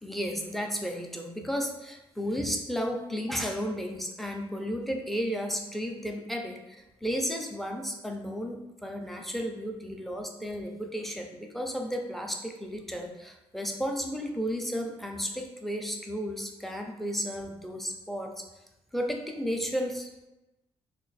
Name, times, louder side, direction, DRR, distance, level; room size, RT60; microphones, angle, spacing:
voice 1, 0.0-18.4 18.9-20.1, equal, ahead, 2 dB, 0.5 m, -33 dB
3.0 x 2.5 x 3.9 m, 1.0 s
cardioid pair, 100°, 11 cm